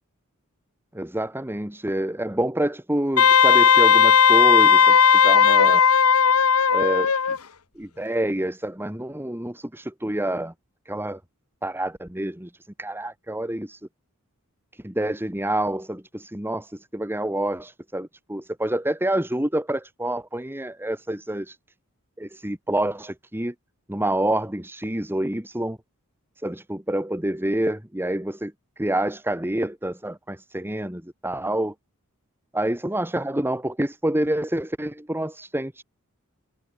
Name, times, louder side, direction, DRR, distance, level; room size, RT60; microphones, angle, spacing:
voice 1, 0.9-5.0 5.2-5.8 6.7-7.4 7.8-10.5 10.9-11.2 11.6-12.5 12.8-13.8 14.8-21.6 22.2-23.5 23.9-25.8 26.4-28.5 28.8-31.7 32.5-35.8, right 1 dB, 10° right, 2.1 m, -27 dB
Wind instrument woodwind instrument, 3.2-7.4, left 7 dB, 80° left, 1.3 m, -16 dB
head